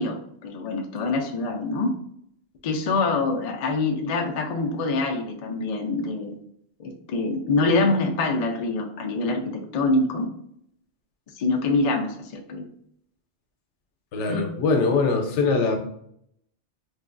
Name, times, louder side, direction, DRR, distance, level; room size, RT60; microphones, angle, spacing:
voice 1, 0.0-1.9 2.6-6.4 6.8-10.3 11.4-12.7 14.3-14.4, left 3 dB, 65° left, 2 dB, 0.3 m, -25 dB
voice 2, 14.1-15.8, left 4 dB, 90° left, 4 dB, 0.9 m, -22 dB
3.3 x 2.2 x 2.4 m, 0.69 s
omnidirectional pair, 1.2 m